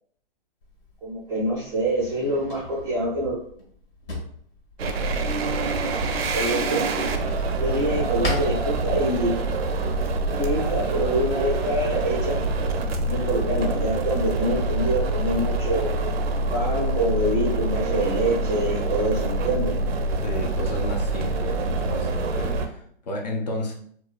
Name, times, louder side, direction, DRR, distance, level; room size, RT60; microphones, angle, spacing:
Drawer open or close, 0.6-9.4, left 2 dB, 65° left, 0.9 m, -38 dB
voice 1, 1.0-3.4 6.3-6.9 7.6-9.4 10.2-12.4 13.1-15.9 16.5-19.8, right 1 dB, 10° right, -7 dB, 0.5 m, -25 dB
sound 1, 4.8-22.7, right 2 dB, 80° right, 0.5 m, -26 dB
voice 2, 20.2-23.7, left 1 dB, 45° left, 1 dB, 0.4 m, -32 dB
2.5 x 2.3 x 2.2 m, 0.62 s
hypercardioid pair, 145°, 30 cm